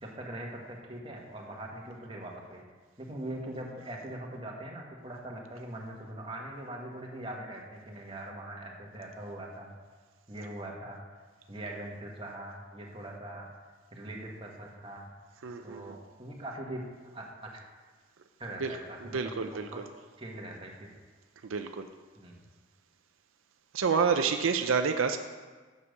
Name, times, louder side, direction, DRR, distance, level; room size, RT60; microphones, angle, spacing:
voice 1, 0.0-2.6 3.0-9.7 10.3-11.0 11.5-13.5 13.9-15.1 15.6-16.8 17.1-17.5 18.4-19.8 20.2-20.9 22.2-22.4, right 1 dB, 25° right, -1 dB, 1.4 m, -42 dB
voice 2, 15.4-16.0 18.6-18.7 19.1-19.8 21.5-21.9 23.7-25.2, right 5 dB, 85° right, 7 dB, 0.5 m, -28 dB
7.1 x 6.8 x 6.3 m, 1.4 s
head